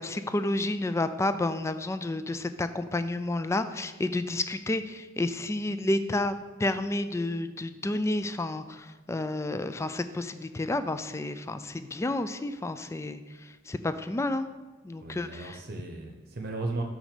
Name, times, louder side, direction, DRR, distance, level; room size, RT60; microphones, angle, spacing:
voice 1, 0.0-14.5 14.8-15.6, left 2 dB, 15° left, 11 dB, 0.3 m, -30 dB
voice 2, 15.0-16.8, right 2 dB, 55° right, 3 dB, 0.8 m, -35 dB
6.2 x 5.3 x 6.7 m, 1.2 s
head